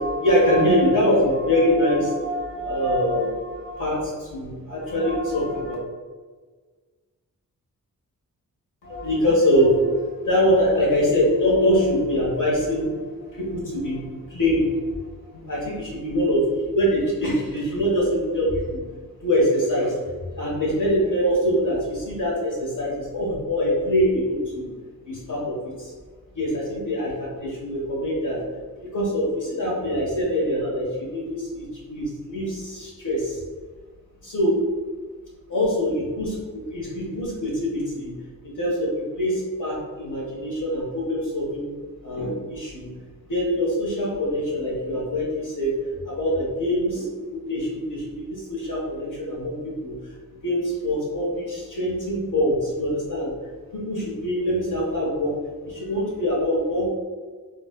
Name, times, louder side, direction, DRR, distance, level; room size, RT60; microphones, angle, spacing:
voice 1, 0.0-5.7 8.8-14.8 15.3-18.8 19.2-20.0 20.3-24.7 25.0-25.9 26.3-28.4 28.8-33.4 34.2-34.6 35.5-38.1 38.4-41.7 42.0-42.9 43.3-45.7 46.0-48.0 48.3-49.5 49.8-50.0 50.4-53.3 53.7-55.3 55.6-56.9, equal, 60° left, -5 dB, 1.3 m, -24 dB
4.0 x 2.5 x 2.3 m, 1.4 s
wide cardioid pair, 100°, 34 cm